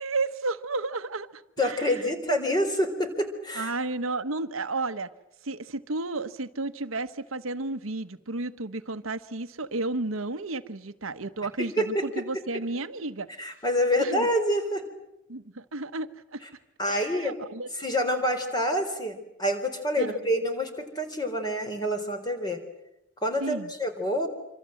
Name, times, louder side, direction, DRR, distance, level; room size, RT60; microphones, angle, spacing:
voice 1, 0.0-2.0 2.3-2.4 3.5-5.1 5.4-13.3 14.0-14.3 15.3-16.4 16.9-17.7 20.0-20.2 23.4-23.7, right 3 dB, 90° right, 1.2 m, -32 dB
voice 2, 1.6-3.7 11.6-12.0 13.4-14.8 16.8-17.4 17.7-22.6 23.2-24.3, equal, 20° left, 3.8 m, -27 dB
26.5 x 26.0 x 7.8 m
head